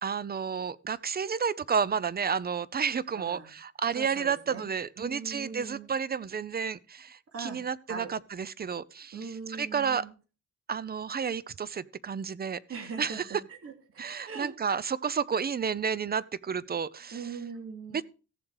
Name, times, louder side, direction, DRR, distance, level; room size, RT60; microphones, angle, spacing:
voice 1, 0.0-10.1 10.7-12.6 13.0-13.3 14.0-17.2 17.9-18.0, right 6 dB, 30° right, 0.7 m, -31 dB
voice 2, 3.1-3.5 3.9-4.7 5.0-5.9 7.3-7.6 7.9-8.1 9.1-10.1 12.7-13.2 13.6-14.5 17.1-18.0, right 5 dB, 50° right, 3.1 m, -40 dB
15.5 x 7.3 x 4.9 m
cardioid pair, 90°, 30 cm